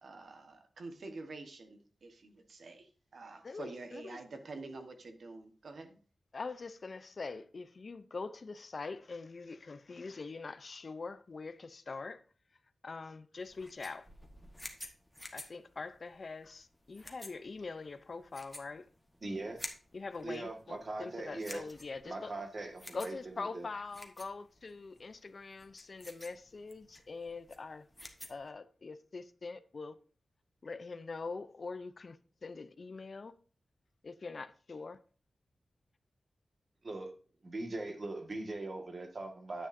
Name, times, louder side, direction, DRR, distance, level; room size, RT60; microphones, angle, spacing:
voice 1, 0.0-6.0, right 3 dB, 65° right, 1.3 m, -48 dB
voice 2, 3.4-4.2 6.3-12.2 12.8-14.1 15.3-18.9 19.9-22.3 22.9-27.9 28.3-30.0 30.6-33.3 34.0-35.0, left 4 dB, 45° left, 0.5 m, -43 dB
sound 1, 13.4-28.5, left 1 dB, 5° left, 1.2 m, -51 dB
voice 3, 19.2-19.6 20.2-21.6 22.0-23.7 36.8-37.1 37.4-39.7, right 2 dB, 40° right, 1.6 m, -41 dB
9.9 x 8.3 x 2.6 m
wide cardioid pair, 145°, 0 cm